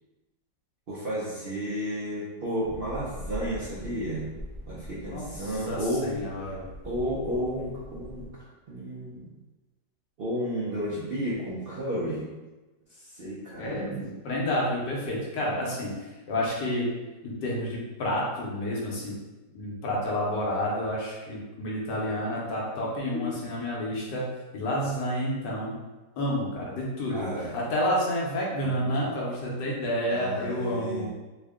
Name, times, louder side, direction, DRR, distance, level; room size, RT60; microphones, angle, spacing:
voice 1, 0.9-4.3 4.7-6.1 6.8-8.2 8.7-9.3 10.2-12.3 12.9-14.0 15.5-15.7 23.1-23.2 27.1-27.5 28.6-29.1 30.1-31.1, equal, 70° right, -8 dB, 0.5 m, -32 dB
sound 1, 2.6-8.3, left 1 dB, 20° left, 0.7 m, -42 dB
voice 2, 5.1-6.7 13.6-15.9 16.3-16.9 17.2-19.1 19.5-24.2 24.5-25.8 26.2-31.1, left 1 dB, 85° left, -4 dB, 1.5 m, -30 dB
3.5 x 2.2 x 3.5 m, 1.2 s
omnidirectional pair, 1.8 m